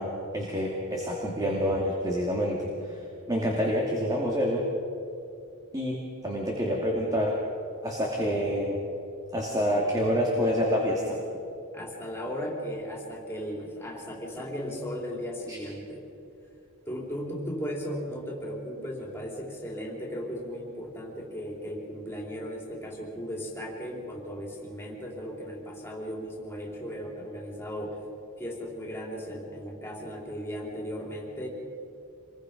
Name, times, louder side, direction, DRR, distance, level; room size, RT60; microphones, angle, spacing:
voice 1, 0.0-2.6 2.9-3.0 3.3-4.6 5.7-7.4 7.8-8.8 9.3-11.2 15.5-15.6, equal, 15° right, -2 dB, 2.4 m, -27 dB
voice 2, 11.7-16.0 16.9-28.0 28.4-31.5, equal, 10° left, -2 dB, 4.1 m, -36 dB
27.0 x 21.5 x 5.3 m, 2.6 s
head